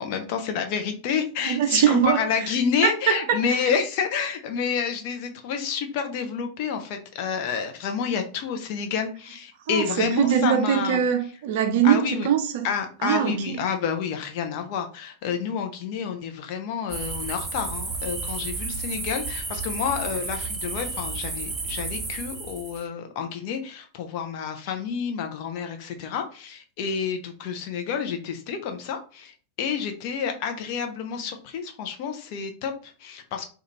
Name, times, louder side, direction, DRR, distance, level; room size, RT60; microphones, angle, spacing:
voice 1, 0.0-11.0 11.8-12.3 12.6-33.4, left 7 dB, 45° left, 0.5 m, -29 dB
voice 2, 1.4-2.3 2.8-3.4 9.7-12.7 13.0-13.6, right 9 dB, 50° right, 0.5 m, -22 dB
sound 1, 16.9-22.8, right 3 dB, 15° right, 0.7 m, -32 dB
2.4 x 2.3 x 3.0 m
figure-of-eight pair, 90°, 0 cm